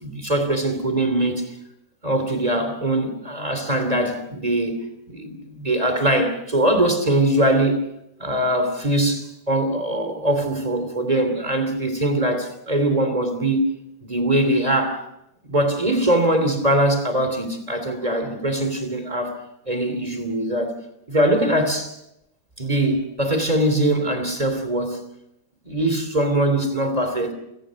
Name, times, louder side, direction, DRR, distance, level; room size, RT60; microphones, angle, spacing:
voice 1, 0.0-1.6 2.0-7.8 8.2-13.6 14.0-15.1 15.4-20.8 21.1-22.0 22.6-25.0 25.6-27.3, right 1 dB, 10° right, 2.3 m, -22 dB
29.5 x 17.0 x 6.4 m
omnidirectional pair, 4.6 m